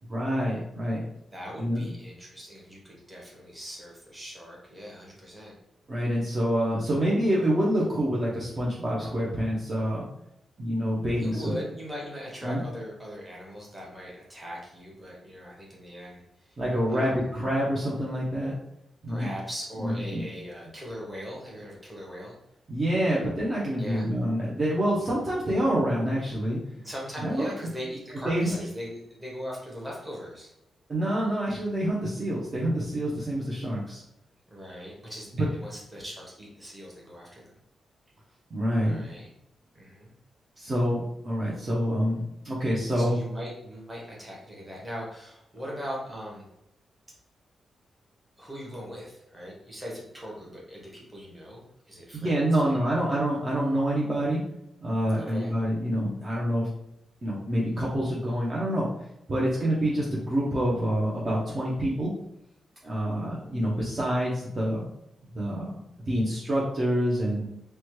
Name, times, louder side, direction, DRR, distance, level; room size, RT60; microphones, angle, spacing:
voice 1, 0.1-1.0 1.6-1.8 5.9-10.1 10.6-11.6 12.4-12.6 16.6-18.6 19.0-19.3 19.8-20.3 22.7-26.6 27.2-27.5 28.2-28.6 30.9-34.0 35.4-35.5 38.5-39.1 40.6-43.2 52.1-54.4 54.8-56.7 57.2-58.9 59.3-62.1 62.8-64.9 65.2-65.7 66.1-67.5, equal, 30° right, -6 dB, 0.6 m, -27 dB
voice 2, 1.3-5.6 11.2-16.2 16.9-17.2 19.1-22.4 23.8-24.1 26.7-30.5 34.5-37.5 38.8-39.3 39.7-40.1 43.0-46.5 48.4-53.0 55.2-55.5, equal, 15° right, -4 dB, 0.9 m, -40 dB
3.0 x 2.1 x 3.0 m, 0.82 s
wide cardioid pair, 145°, 0 cm